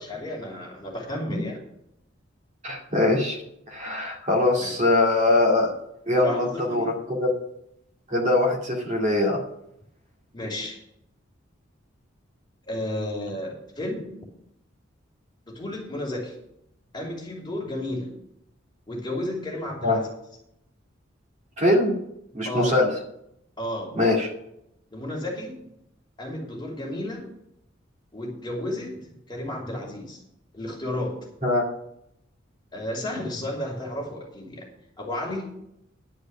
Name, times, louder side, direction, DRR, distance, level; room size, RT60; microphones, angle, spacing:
voice 1, 0.0-1.6 4.6-4.7 6.2-6.9 10.3-10.8 12.7-14.1 15.5-16.3 16.9-18.1 18.9-20.1 22.4-22.8 23.6-23.9 24.9-25.6 26.2-27.2 28.1-28.9 29.3-30.2 30.5-31.2 32.7-34.7 35.0-35.5, left 1 dB, 20° left, -2 dB, 2.8 m, -32 dB
voice 2, 2.6-3.4 3.7-5.7 6.1-7.3 8.1-9.4 19.8-20.0 21.6-21.9 22.3-22.9 23.9-24.3 31.4-31.6, left 2 dB, 35° right, -1 dB, 2.3 m, -22 dB
11.5 x 5.0 x 8.5 m, 0.78 s
head